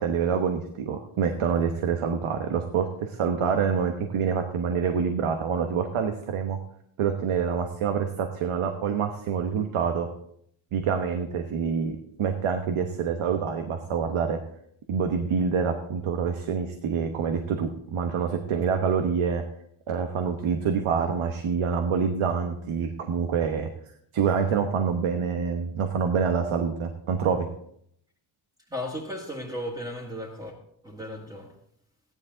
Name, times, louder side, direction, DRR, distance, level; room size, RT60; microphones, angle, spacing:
voice 1, 0.0-6.6 7.0-10.1 10.7-11.9 12.2-14.4 14.9-19.4 19.9-23.7 24.1-27.5, right 6 dB, 80° right, 5 dB, 1.2 m, -26 dB
voice 2, 28.7-30.5 30.8-31.5, left 1 dB, 10° right, -5 dB, 1.8 m, -35 dB
14.5 x 10.5 x 3.9 m, 0.69 s
wide cardioid pair, 150°, 49 cm